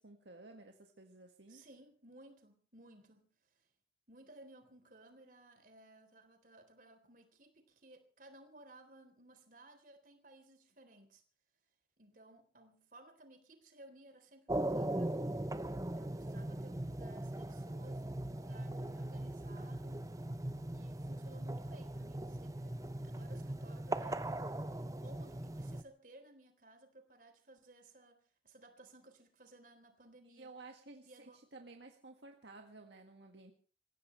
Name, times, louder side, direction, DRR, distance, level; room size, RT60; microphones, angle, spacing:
voice 1, 0.0-1.7 30.3-33.5, right 2 dB, 75° right, 3 dB, 1.9 m, -54 dB
voice 2, 1.5-3.7 4.1-11.2 12.0-15.2 15.8-20.0 20.7-30.6 31.0-31.5, right 2 dB, 50° right, 6 dB, 3.8 m, -59 dB
sound 1, 14.5-25.8, right 1 dB, 20° right, 0.8 m, -39 dB
27.0 x 16.0 x 3.3 m, 0.37 s
head